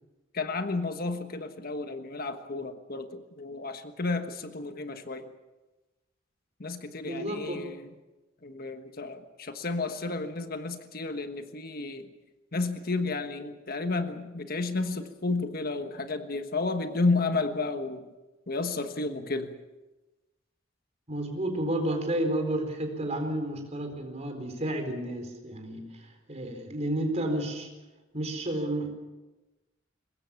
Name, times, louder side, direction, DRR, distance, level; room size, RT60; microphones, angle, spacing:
voice 1, 0.3-5.3 6.6-7.9 8.4-12.1 12.5-18.1 18.5-19.5, left 3 dB, 50° left, 8 dB, 1.4 m, -32 dB
voice 2, 7.0-7.7 21.1-27.7 28.1-28.9, right 1 dB, 35° right, 5 dB, 4.3 m, -31 dB
23.0 x 20.5 x 7.1 m, 1.1 s
head